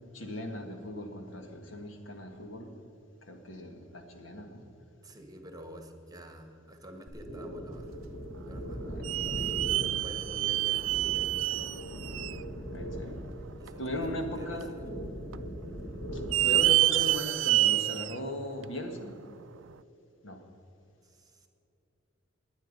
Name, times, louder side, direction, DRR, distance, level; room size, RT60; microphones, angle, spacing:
voice 1, 0.1-2.7 3.2-4.6 8.9-9.1 12.7-13.2 13.8-14.7 16.1-19.2 20.2-20.4, left 1 dB, 80° left, 5 dB, 1.7 m, -38 dB
voice 2, 5.0-8.0 8.4-8.8 9.3-11.9 13.6-14.9 21.0-21.5, equal, 20° right, 5 dB, 1.3 m, -48 dB
sound 1, 7.1-16.7, equal, 25° left, 3.7 m, -40 dB
sound 2, 8.2-8.4 9.0-12.4 12.9-13.0 13.7-13.8 14.6-15.1 15.3-15.4 16.2-18.2 18.6-18.7 19.7-19.8, right 16 dB, 80° right, 0.3 m, -27 dB
21.0 x 9.0 x 5.3 m, 2.8 s
head